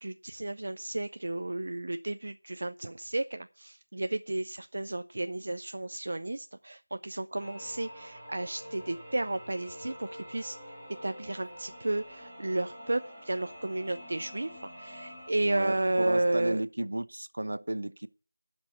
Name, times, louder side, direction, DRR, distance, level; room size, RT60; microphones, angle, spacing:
voice 1, 0.0-10.6 11.0-16.6, right 2 dB, 35° right, 0.5 m, -32 dB
sound 1, 7.4-15.3, equal, 5° right, 2.1 m, -47 dB
voice 2, 15.3-18.1, right 1 dB, 55° right, 0.9 m, -34 dB
12.0 x 6.1 x 8.2 m
figure-of-eight pair, 180°, 0 cm